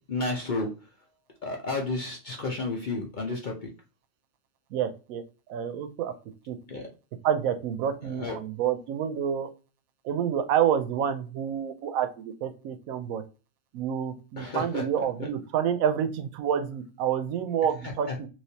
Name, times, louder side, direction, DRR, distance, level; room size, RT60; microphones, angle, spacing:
voice 1, 0.1-0.7 1.4-3.7 6.7-6.9 8.0-8.4 14.4-14.8 15.2-15.3 18.1-18.2, left 3 dB, 45° left, 0 dB, 0.6 m, -31 dB
voice 2, 4.7-5.2 5.5-6.1 6.5-6.6 7.2-9.5 10.0-13.2 13.7-18.3, right 9 dB, 80° right, 9 dB, 1.0 m, -28 dB
3.2 x 3.1 x 2.7 m, 0.34 s
omnidirectional pair, 1.4 m